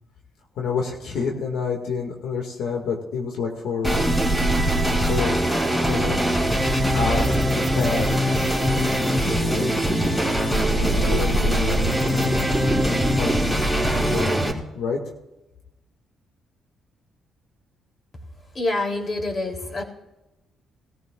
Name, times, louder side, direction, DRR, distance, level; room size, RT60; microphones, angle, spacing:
voice 1, 0.6-4.0 4.9-5.3 5.7-6.4 6.9-8.1 8.5-9.9 10.5-12.4 13.0-13.6 13.9-14.4 14.7-15.0, left 5 dB, 80° left, 1 dB, 2.2 m, -29 dB
sound 1, 3.8-14.5, equal, 10° left, 3.3 m, -21 dB
voice 2, 18.5-19.8, left 2 dB, 35° left, 0 dB, 3.5 m, -26 dB
20.5 x 14.5 x 2.5 m, 0.96 s
cardioid pair, 90°, 0 cm